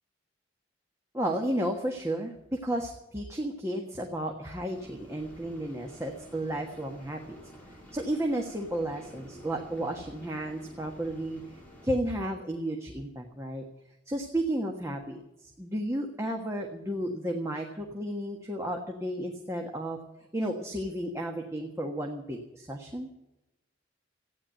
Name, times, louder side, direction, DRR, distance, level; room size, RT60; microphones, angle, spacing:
voice 1, 1.1-7.4 7.9-11.4 11.8-13.6 14.1-20.0 20.3-23.1, right 1 dB, 15° right, 1 dB, 1.4 m, -33 dB
sound 1, 4.7-11.9, equal, 10° left, 4.4 m, -50 dB
15.0 x 9.8 x 9.0 m, 0.94 s
head